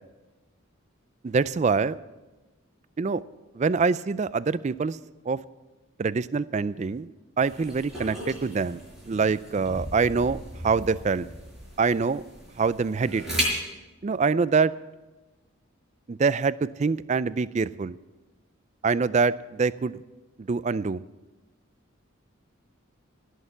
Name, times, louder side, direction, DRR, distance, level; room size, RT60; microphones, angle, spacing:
voice 1, 1.2-2.0 3.0-3.2 3.5-5.0 5.3-5.4 6.0-7.1 7.4-8.8 9.1-11.3 11.8-12.2 12.6-13.2 14.0-14.7 16.1-17.9 18.8-20.0 20.5-21.0, right 4 dB, 35° right, 17 dB, 0.3 m, -25 dB
sound 1, 7.4-13.4, equal, 5° right, 5.9 m, -36 dB
18.0 x 6.6 x 7.9 m, 1.1 s
head